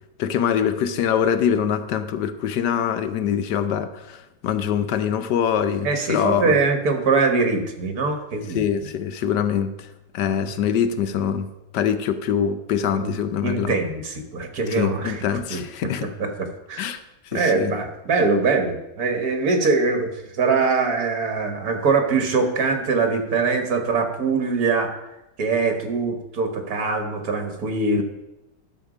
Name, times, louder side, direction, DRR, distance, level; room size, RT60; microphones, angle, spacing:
voice 1, 0.2-6.6 8.5-9.9 10.1-11.5 11.7-13.8 14.7-16.1 16.8-17.0 17.2-17.7 28.0-28.1, left 8 dB, 80° left, 10 dB, 1.3 m, -24 dB
voice 2, 5.8-8.6 12.9-13.1 13.4-15.6 16.2-16.8 17.3-24.9 25.4-28.0, right 4 dB, 65° right, 5 dB, 1.8 m, -23 dB
12.0 x 6.3 x 5.0 m, 0.94 s
omnidirectional pair, 1.8 m